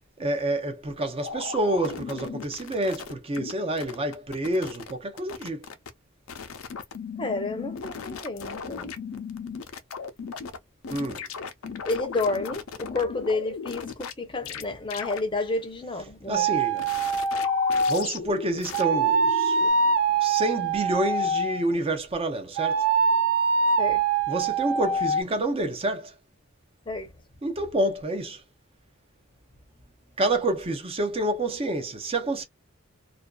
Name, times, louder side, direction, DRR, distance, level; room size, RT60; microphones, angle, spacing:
voice 1, 0.2-5.7 10.9-11.2 16.3-16.9 17.9-19.9 20.2-22.9 24.3-26.2 27.4-28.4 30.2-32.4, right 1 dB, 25° right, 0.5 m, -28 dB
sound 1, 1.2-3.5 3.8-4.9 5.2-5.9 6.3-10.6 10.8-14.1 14.5-14.6 14.9-15.2 16.8-19.7, left 5 dB, 70° left, 0.5 m, -36 dB
voice 2, 7.2-8.9 11.8-16.5 23.8-24.0 26.9-27.1, left 3 dB, 20° left, 0.6 m, -30 dB
sound 2, 16.3-18.1 18.7-21.6 22.6-25.2, right 4 dB, 75° right, 0.5 m, -24 dB
2.5 x 2.2 x 2.3 m
head